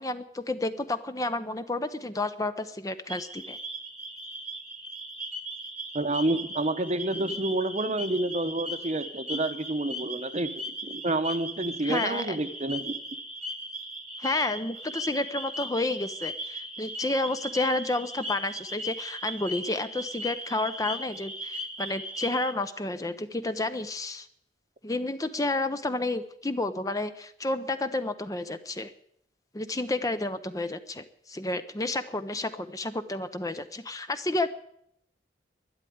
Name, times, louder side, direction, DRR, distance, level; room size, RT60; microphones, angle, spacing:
voice 1, 0.0-3.6 11.8-12.4 14.2-24.3 24.8-28.9 29.5-34.5, left 2 dB, 20° left, 11 dB, 0.6 m, -31 dB
sound 1, 3.1-22.5, equal, 5° right, 1.3 m, -38 dB
voice 2, 5.9-13.0, right 2 dB, 40° right, 11 dB, 0.9 m, -29 dB
12.0 x 10.5 x 9.4 m, 0.73 s
head